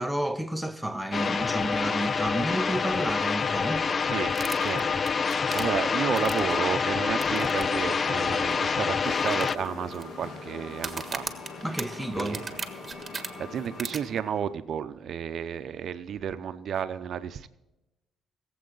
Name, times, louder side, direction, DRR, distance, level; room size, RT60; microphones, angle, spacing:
voice 1, 0.0-3.9 11.6-12.4, right 1 dB, ahead, 0.9 m, -31 dB
sound 1, 1.1-9.6, left 5 dB, 40° left, 0.3 m, -27 dB
voice 2, 4.0-11.3 12.1-12.6 13.0-17.5, right 8 dB, 65° right, 0.7 m, -32 dB
sound 2, 4.3-6.6 7.2-7.6 7.9-8.0 8.5-8.6 9.2-10.0 10.7-13.3 13.8-14.0, right 4 dB, 30° right, 1.5 m, -36 dB
sound 3, 9.0-14.5, left 3 dB, 60° left, 2.5 m, -42 dB
21.0 x 7.8 x 4.0 m
cardioid pair, 90°, 0 cm